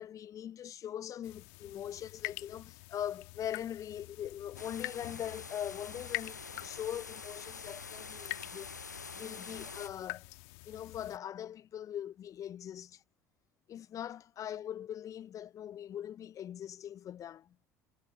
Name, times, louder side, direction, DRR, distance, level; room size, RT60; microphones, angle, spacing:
voice 1, 0.0-8.7 9.1-10.2 10.6-13.0 13.7-17.5, left 10 dB, 35° left, 0.7 m, -41 dB
sound 1, 1.2-11.2, left 32 dB, 60° left, 1.6 m, -46 dB
sound 2, 4.6-9.9, left 5 dB, 85° left, 0.7 m, -46 dB
figure-of-eight pair, 60°, 9 cm